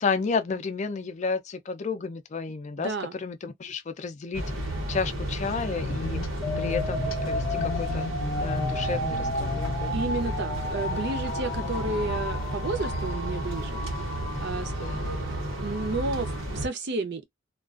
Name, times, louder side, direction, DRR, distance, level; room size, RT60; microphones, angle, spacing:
voice 1, 0.0-4.5 4.9-6.2 6.6-8.1 8.4-10.0 11.6-12.1 14.8-15.1, left 4 dB, 35° left, 0.3 m, -32 dB
voice 2, 2.8-3.1 9.9-14.1 14.4-17.2, right 3 dB, 55° right, 0.6 m, -32 dB
sound 1, 4.3-16.7, right 1 dB, 80° right, 0.9 m, -32 dB
sound 2, 5.8-11.0, left 4 dB, 85° left, 0.6 m, -36 dB
sound 3, 6.4-16.4, left 2 dB, 20° left, 0.7 m, -34 dB
2.3 x 2.2 x 2.4 m
head